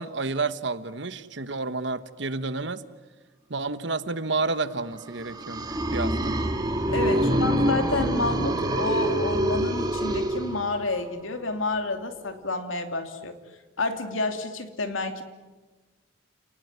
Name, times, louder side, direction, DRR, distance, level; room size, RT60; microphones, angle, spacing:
voice 1, 0.0-2.8 3.5-6.3 7.1-7.5, right 3 dB, 65° right, 13 dB, 1.2 m, -30 dB
sound 1, 5.1-11.0, right 1 dB, 20° right, 2.5 m, -26 dB
voice 2, 6.9-13.4 13.8-15.2, left 3 dB, 85° left, 7 dB, 2.8 m, -29 dB
29.5 x 19.5 x 9.6 m, 1.2 s
head